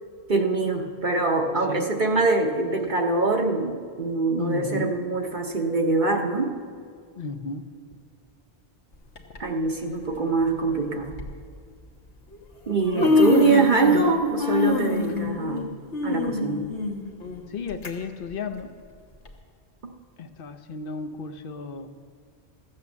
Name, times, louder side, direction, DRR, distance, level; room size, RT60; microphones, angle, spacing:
voice 1, 0.3-6.6 9.4-11.2 12.7-15.6 16.0-16.7 19.8-19.9, right 3 dB, 50° right, 2 dB, 1.0 m, -23 dB
voice 2, 1.6-1.9 4.4-5.0 7.2-7.7 12.9-13.4 15.1-15.4 17.5-18.7 20.2-21.9, left 4 dB, 55° left, 7 dB, 0.9 m, -34 dB
Human voice, 9.2-9.4 10.4-10.5 11.1-11.3 12.3-12.4 12.7-14.1 14.4-17.9 18.3-18.4 19.3-19.4, left 3 dB, 85° left, 1.6 m, -24 dB
14.5 x 8.7 x 7.1 m, 2.2 s
omnidirectional pair, 1.1 m